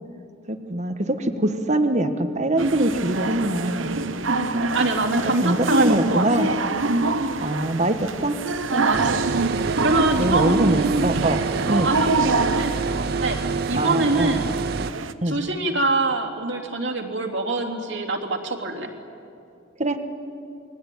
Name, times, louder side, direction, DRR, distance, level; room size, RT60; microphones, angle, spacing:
voice 1, 0.5-3.9 5.4-6.5 7.4-8.4 10.2-11.4 11.7-11.9 13.8-14.3 15.2-15.4 19.8-20.0, right 1 dB, 35° right, 8 dB, 1.6 m, -23 dB
sound 1, 2.6-15.1, right 3 dB, 90° right, 1.1 m, -26 dB
voice 2, 4.3-6.6 6.9-7.1 8.7-9.4 9.8-11.1 11.8-14.5 15.3-18.9, right 2 dB, 70° right, 2 dB, 3.1 m, -24 dB
sound 2, 8.9-14.9, right 4 dB, 50° right, 0.6 m, -27 dB
28.0 x 22.0 x 9.3 m, 2.6 s
head